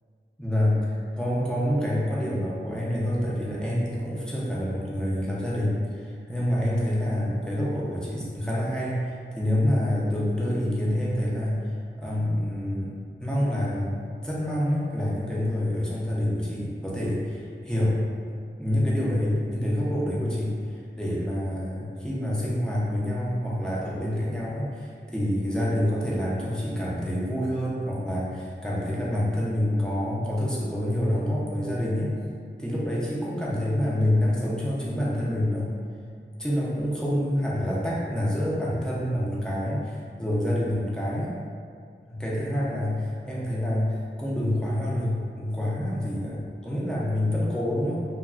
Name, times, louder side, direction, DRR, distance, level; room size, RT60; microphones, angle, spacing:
voice 1, 0.4-11.6 12.0-12.9 13.2-18.0 18.5-32.1 32.6-35.7 36.4-41.3 42.0-48.0, left 1 dB, 5° left, -7 dB, 0.7 m, -27 dB
3.0 x 2.3 x 2.4 m, 2.2 s
wide cardioid pair, 45°, 20 cm